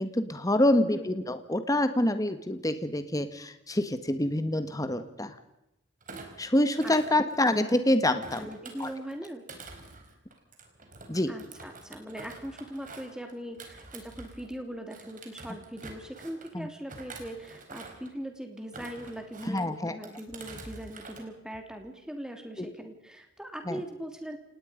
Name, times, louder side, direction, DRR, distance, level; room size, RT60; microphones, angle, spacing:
voice 1, 0.0-5.3 6.4-8.4 8.8-8.9 11.1-11.3 16.5-16.7 19.5-19.9 22.6-22.7 23.7-23.8, left 1 dB, 20° left, 10 dB, 1.6 m, -26 dB
Thump thud, 6.0-7.8 8.2-14.6 14.9-16.5 16.9-18.1 18.6-19.6 20.0-21.2 21.5-21.9, right 3 dB, 45° right, 4.3 m, -47 dB
voice 2, 6.8-7.2 8.3-9.4 11.3-24.4, right 1 dB, 5° right, 5 dB, 3.1 m, -40 dB
29.5 x 19.0 x 5.2 m, 0.88 s
head